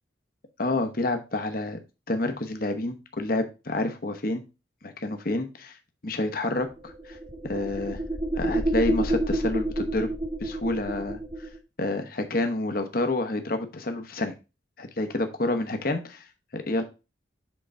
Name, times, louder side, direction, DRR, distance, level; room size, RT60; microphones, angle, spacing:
voice 1, 0.6-1.8 2.1-4.4 4.8-5.8 6.0-7.2 7.4-8.0 8.4-10.1 10.4-11.5 11.8-14.3 14.8-16.3 16.5-16.8, left 2 dB, 50° left, 7 dB, 1.0 m, -28 dB
sound 1, 6.6-11.6, right 1 dB, 30° right, 1.0 m, -29 dB
7.7 x 3.9 x 4.4 m, 0.28 s
head